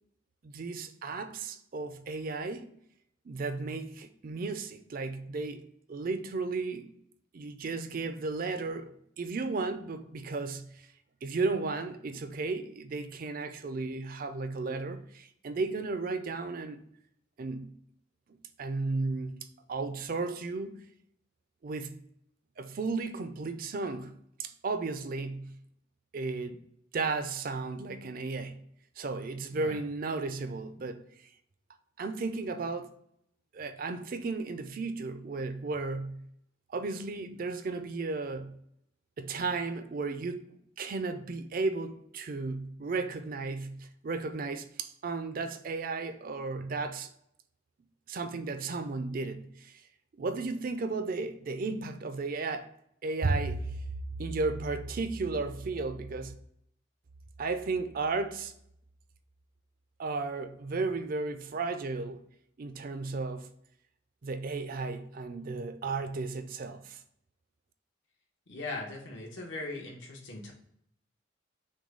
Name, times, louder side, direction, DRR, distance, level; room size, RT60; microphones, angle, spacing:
voice 1, 0.4-2.7 3.3-6.9 7.3-10.9 11.2-16.8 17.4-17.7 18.6-19.4 19.7-20.8 21.6-22.0 22.6-24.1 24.4-25.6 26.1-26.6 26.9-28.6 29.0-31.0 32.0-32.9 33.5-36.3 36.7-38.6 39.2-40.4 40.8-47.1 48.1-49.8 50.2-52.7 53.0-53.7 54.2-56.3 57.4-58.5 60.0-62.2 62.6-63.5 64.2-67.0, right 3 dB, 45° right, 0.4 m, -34 dB
voice 2, 68.5-70.5, left 2 dB, 75° left, 1.2 m, -39 dB
6.1 x 2.3 x 3.8 m
head